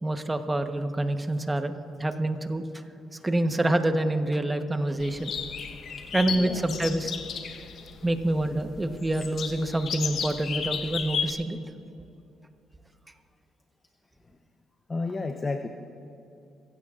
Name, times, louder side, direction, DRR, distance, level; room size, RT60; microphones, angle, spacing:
voice 1, 0.0-2.6 3.2-5.3 6.1-7.1 8.0-11.6, right 1 dB, 15° right, 7 dB, 1.0 m, -27 dB
sound 1, 5.0-11.3, left 6 dB, 65° left, 1.0 m, -34 dB
voice 2, 6.0-6.7 7.4-7.5 14.2-14.4 14.9-15.7, left 3 dB, 30° left, 6 dB, 0.8 m, -33 dB
23.5 x 16.0 x 2.5 m, 2.8 s
cardioid pair, 90°, 0 cm